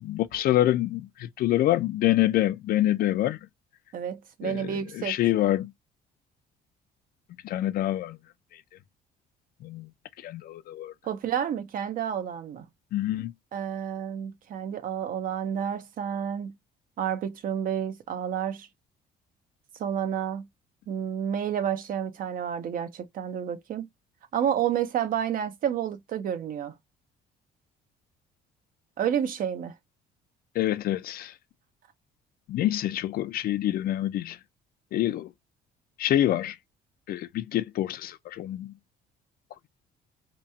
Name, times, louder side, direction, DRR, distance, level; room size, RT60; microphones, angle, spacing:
voice 1, 0.0-3.4 4.4-5.7 7.4-8.2 9.6-9.9 10.2-10.9 12.9-13.3 30.6-31.3 32.5-34.4 34.9-35.3 36.0-36.5 37.1-38.7, left 13 dB, 65° left, 0.5 m, -26 dB
voice 2, 3.9-5.2 11.0-12.7 13.5-16.5 17.0-18.7 19.8-20.5 20.9-23.9 24.3-26.8 29.0-29.7, right 9 dB, 55° right, 0.7 m, -30 dB
3.0 x 2.3 x 2.7 m
cardioid pair, 110°, 17 cm